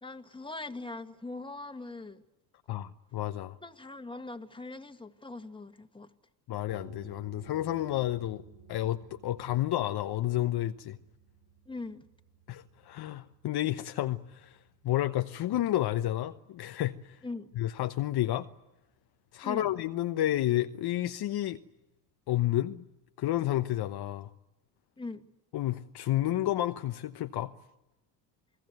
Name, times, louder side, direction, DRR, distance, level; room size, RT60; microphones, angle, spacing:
voice 1, 0.0-2.2 3.6-6.1 11.7-12.0 17.2-17.5 19.4-19.7 25.0-25.3, left 3 dB, 10° left, 2.0 m, -41 dB
voice 2, 2.7-3.6 6.5-8.4 8.7-11.0 12.5-14.6 14.8-17.2 17.6-18.5 19.3-21.6 22.3-22.8 23.2-24.3 25.5-27.5, left 13 dB, 55° left, 1.1 m, -30 dB
sound 1, 6.7-18.1, right 5 dB, 45° right, 4.7 m, -57 dB
29.0 x 19.5 x 9.3 m
hypercardioid pair, 60°, 46 cm